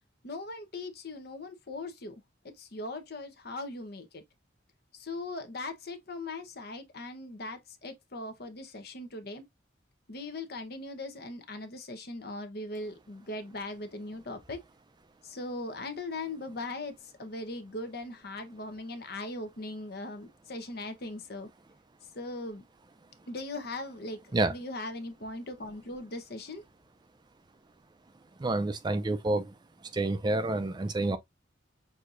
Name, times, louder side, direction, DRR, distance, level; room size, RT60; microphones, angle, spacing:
voice 1, 0.2-2.1 2.6-4.2 4.9-9.4 10.1-14.6 15.2-16.9 17.2-21.5 22.1-22.6 23.3-24.2 24.5-26.6, left 2 dB, 55° left, 0.9 m, -39 dB
voice 2, 28.4-29.5 29.9-31.2, right 2 dB, 25° right, 0.4 m, -28 dB
6.4 x 2.7 x 2.5 m
head